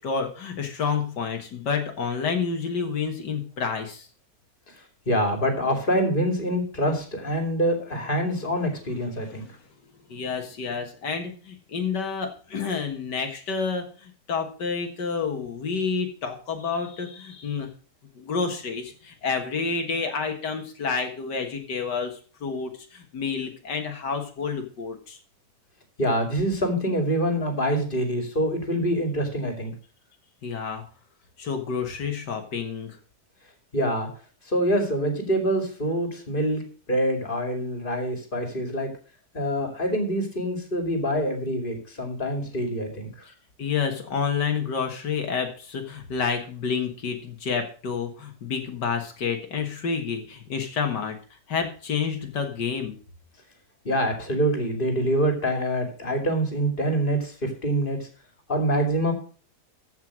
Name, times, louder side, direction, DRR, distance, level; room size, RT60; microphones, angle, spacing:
voice 1, 0.0-4.1 9.2-9.6 10.1-17.7 18.2-22.1 22.4-25.2 30.4-30.8 31.4-33.0 43.2-43.3 43.6-51.2 51.5-53.0, left 5 dB, 75° left, 5 dB, 2.2 m, -29 dB
voice 2, 5.1-9.4 26.0-29.7 33.7-34.1 34.5-36.6 36.9-38.9 39.3-43.1 53.8-58.0 58.5-59.1, equal, 30° left, 5 dB, 2.7 m, -25 dB
14.0 x 5.7 x 6.2 m, 0.39 s
omnidirectional pair, 1.8 m